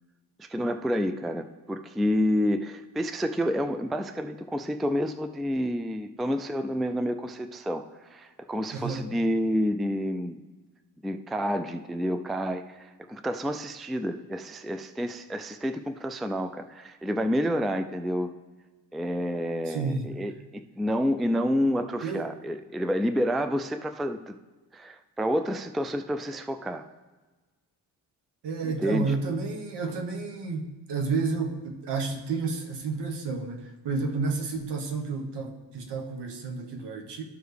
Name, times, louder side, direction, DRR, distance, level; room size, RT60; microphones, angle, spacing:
voice 1, 0.4-10.4 11.0-18.3 18.9-24.4 24.7-26.8 28.6-29.1, equal, ahead, 9 dB, 0.3 m, -29 dB
voice 2, 8.7-9.1 19.6-20.1 22.0-22.3 28.4-37.2, right 4 dB, 70° right, 3 dB, 1.3 m, -31 dB
13.0 x 4.6 x 3.4 m, 1.3 s
supercardioid pair, 55°, 43 cm